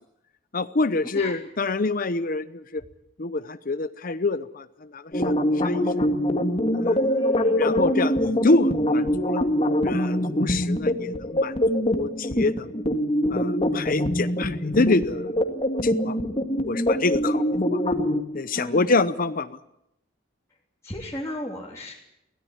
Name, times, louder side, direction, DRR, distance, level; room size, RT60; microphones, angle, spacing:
voice 1, 0.5-2.8 3.2-4.7 4.9-5.8 6.7-7.0 7.6-9.4 9.8-12.8 13.3-15.3 15.8-16.2 16.6-17.8 18.3-19.6, left 3 dB, 50° left, 12 dB, 0.8 m, -26 dB
sound 1, 5.1-18.2, left 1 dB, 30° left, 2.1 m, -24 dB
voice 2, 7.2-7.6 18.5-18.9 20.8-21.9, left 1 dB, 15° left, -5 dB, 3.4 m, -34 dB
23.5 x 17.5 x 9.6 m, 0.84 s
head